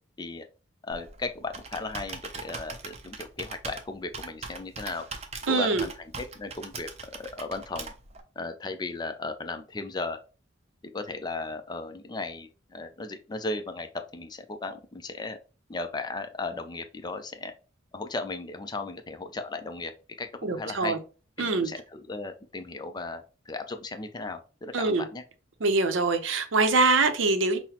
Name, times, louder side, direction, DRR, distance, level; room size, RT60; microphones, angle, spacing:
voice 1, 0.9-5.1 5.5-7.9 8.4-10.2 10.8-15.4 15.7-17.5 17.9-19.9 20.2-21.0 21.4-25.2, left 3 dB, 20° left, 0.4 m, -36 dB
Computer keyboard, 0.9-8.2, right 4 dB, 35° right, 0.5 m, -41 dB
voice 2, 5.5-5.8 20.4-21.0 21.4-21.7 24.7-25.0 25.6-27.6, right 3 dB, 80° right, 0.6 m, -24 dB
5.7 x 2.0 x 2.8 m
head